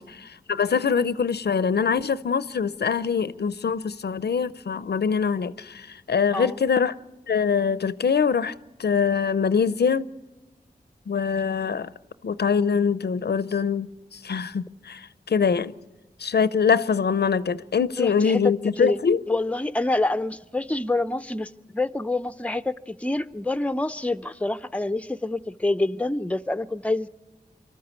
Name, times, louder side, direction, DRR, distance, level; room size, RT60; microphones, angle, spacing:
voice 1, 0.0-6.9 7.3-8.5 8.8-10.1 11.1-11.9 12.2-15.7 16.2-19.2, left 6 dB, 80° left, 0.6 m, -24 dB
voice 2, 18.0-18.5 18.8-19.0 19.3-27.1, left 2 dB, 10° left, 0.6 m, -27 dB
24.5 x 13.5 x 8.3 m
wide cardioid pair, 60°, 17 cm